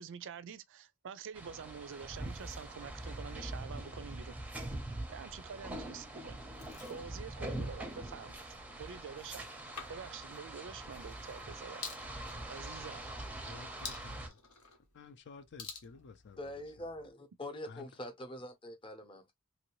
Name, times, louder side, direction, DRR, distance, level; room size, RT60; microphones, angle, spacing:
voice 1, 0.0-4.4 5.1-6.4 6.9-8.4 8.8-9.5 9.9-11.9 12.5-13.0, right 7 dB, 60° right, 0.4 m, -47 dB
sound 1, 1.3-14.3, right 1 dB, 5° right, 0.6 m, -43 dB
sound 2, 6.5-17.1, left 5 dB, 85° left, 1.0 m, -52 dB
voice 2, 13.5-14.4 14.9-16.9 17.7-17.9, left 4 dB, 55° left, 0.5 m, -53 dB
voice 3, 16.4-19.3, left 1 dB, 25° left, 0.8 m, -44 dB
3.0 x 2.6 x 2.9 m
head